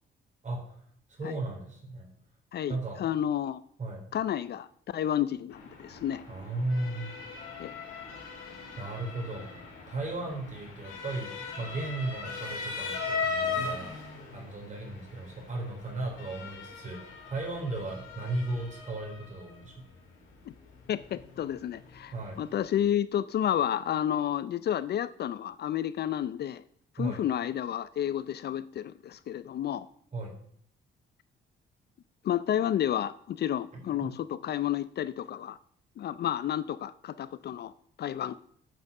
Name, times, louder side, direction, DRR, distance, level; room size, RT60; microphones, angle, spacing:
voice 1, 0.4-0.8 1.1-2.1 2.7-3.0 3.8-4.0 6.3-7.1 8.8-9.6 9.9-11.3 11.6-13.9 14.3-19.8 22.1-22.4 27.0-27.2 30.1-30.3 33.7-34.1, right 2 dB, 40° right, 0 dB, 4.1 m, -35 dB
voice 2, 2.5-3.6 4.1-4.7 4.9-6.2 7.6-7.7 20.9-26.6 27.0-29.9 32.2-35.6 36.0-37.7 38.0-38.3, left 10 dB, 55° left, 16 dB, 0.5 m, -31 dB
Motor vehicle (road) / Siren, 5.5-22.9, left 4 dB, 85° left, 3.1 m, -39 dB
9.2 x 6.0 x 6.6 m, 0.64 s
cardioid pair, 90°, 20 cm